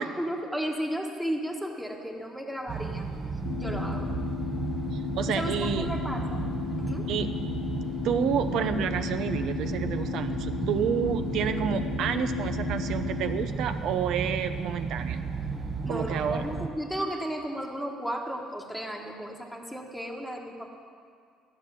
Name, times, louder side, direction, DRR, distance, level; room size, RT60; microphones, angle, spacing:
voice 1, 0.0-3.1 3.6-4.1 5.3-6.4 6.8-7.1 15.8-20.6, equal, ahead, 0 dB, 1.4 m, -34 dB
sound 1, 2.7-16.7, right 4 dB, 25° right, 0.9 m, -33 dB
sound 2, 3.4-13.4, left 12 dB, 80° left, 0.4 m, -35 dB
voice 2, 4.9-5.9 7.1-7.4 8.0-15.2 15.9-16.4, right 7 dB, 65° right, 8 dB, 0.8 m, -29 dB
14.5 x 6.7 x 9.9 m, 2.2 s
cardioid pair, 140°, 0 cm